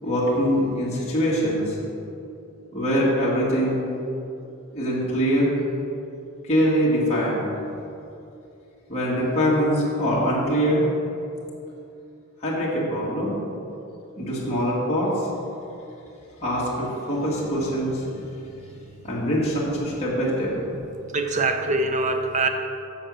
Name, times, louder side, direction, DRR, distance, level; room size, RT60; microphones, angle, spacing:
voice 1, 0.0-1.8 2.7-3.8 4.7-5.5 6.4-7.5 8.9-10.9 12.4-13.3 14.2-15.3 16.4-18.1 19.0-20.5, equal, 30° left, -7 dB, 1.7 m, -23 dB
voice 2, 21.1-22.5, right 3 dB, 30° right, 5 dB, 0.6 m, -23 dB
7.7 x 5.4 x 6.1 m, 2.7 s
head